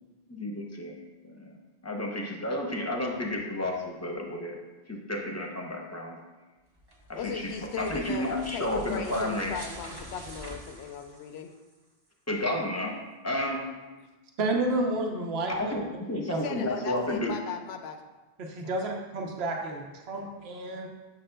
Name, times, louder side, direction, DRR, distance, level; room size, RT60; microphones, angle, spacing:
voice 1, 0.3-1.0 1.3-1.6 1.8-4.6 4.9-6.2 7.1-7.5 7.8-9.5 12.3-12.9 13.2-13.6 15.5-17.3, left 1 dB, 20° left, 0 dB, 0.6 m, -31 dB
sound 1, 6.8-11.7, right 1 dB, 25° right, 0.8 m, -45 dB
voice 2, 7.1-8.3 8.5-11.5 16.4-18.0 18.6-18.8, left 7 dB, 75° left, 7 dB, 0.8 m, -37 dB
voice 3, 14.4-15.8 16.3-16.4 18.5-20.9, right 2 dB, 70° right, 1 dB, 1.0 m, -30 dB
7.5 x 5.8 x 2.2 m, 1.2 s
omnidirectional pair, 1.1 m